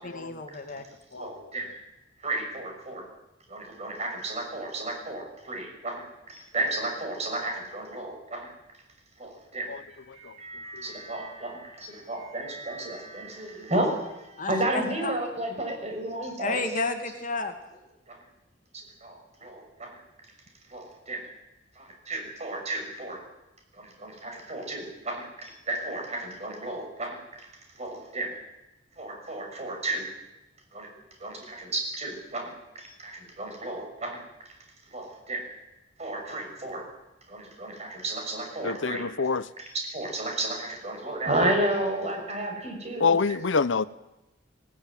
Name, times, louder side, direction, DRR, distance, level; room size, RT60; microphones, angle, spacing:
voice 1, 0.0-0.8 14.4-15.1 16.4-17.5, left 3 dB, 45° left, 6 dB, 2.1 m, -31 dB
voice 2, 1.1-1.7 2.2-3.0 3.5-8.5 9.2-16.6 18.1-18.2 19.0-20.0 20.7-21.3 21.7-23.2 23.7-27.5 27.8-28.3 29.0-30.1 30.7-30.9 31.2-34.2 34.9-35.5 36.0-36.8 37.3-39.3 39.6-43.2, right 1 dB, 35° right, 2 dB, 6.2 m, -33 dB
voice 3, 38.6-39.4 43.0-43.8, left 5 dB, 80° left, 17 dB, 0.7 m, -25 dB
19.5 x 16.5 x 9.1 m, 0.95 s
head